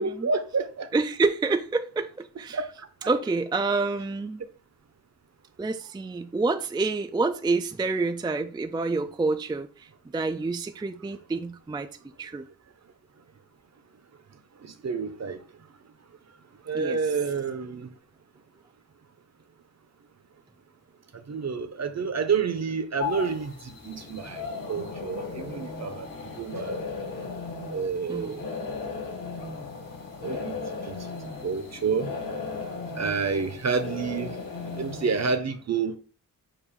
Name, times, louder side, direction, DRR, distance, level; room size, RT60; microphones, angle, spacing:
voice 1, 0.0-0.9 2.5-2.7 3.0-3.1 14.6-15.4 16.7-17.9 21.3-24.4 24.7-26.8 27.7-28.4 30.2-30.6 30.8-30.9 31.4-32.1 32.9-34.3 34.8-36.0, right 5 dB, 50° right, 0.8 m, -29 dB
voice 2, 0.9-2.6 3.1-4.4 5.6-11.9 12.2-12.4 16.7-17.0 28.1-28.4, right 3 dB, 15° right, 0.3 m, -28 dB
sound 1, 23.0-35.4, left 4 dB, 70° left, 1.7 m, -36 dB
6.9 x 2.5 x 5.5 m
wide cardioid pair, 150°, 34 cm